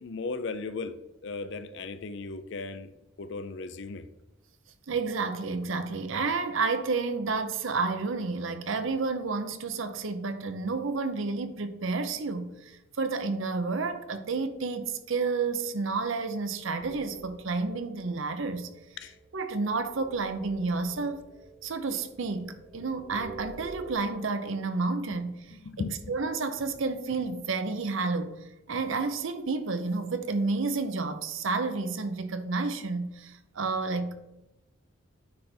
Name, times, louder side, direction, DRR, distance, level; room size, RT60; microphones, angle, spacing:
voice 1, 0.0-2.9 3.2-4.1 19.0-19.2 25.5-26.2, left 3 dB, 55° left, 0.5 m, -36 dB
voice 2, 4.9-18.7 19.3-21.2 21.6-25.4 26.1-34.1, right 4 dB, 65° right, 0.6 m, -30 dB
sound 1, 16.8-23.9, right 4 dB, ahead, 0.7 m, -48 dB
9.7 x 3.4 x 4.4 m
head